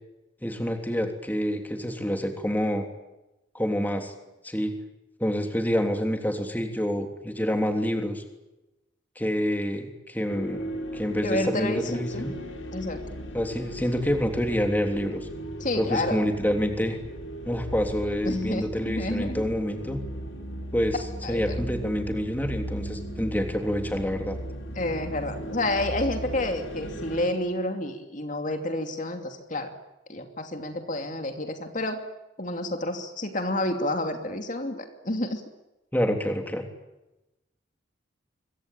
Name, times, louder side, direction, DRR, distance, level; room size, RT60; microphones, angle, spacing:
voice 1, 0.4-2.9 3.5-4.1 4.4-4.7 5.2-8.2 9.1-12.3 13.3-15.3 15.8-17.0 17.4-20.0 20.7-21.0 21.3-24.4 35.9-36.6, equal, 10° left, 5 dB, 3.2 m, -27 dB
sound 1, 10.3-27.3, equal, 80° left, 4.3 m, -36 dB
voice 2, 11.2-12.3 12.7-13.0 15.6-16.2 18.2-19.4 21.2-21.6 24.7-29.7 30.1-32.0 32.4-35.4, left 1 dB, 40° left, 5 dB, 2.8 m, -29 dB
26.0 x 24.0 x 9.1 m, 0.98 s
head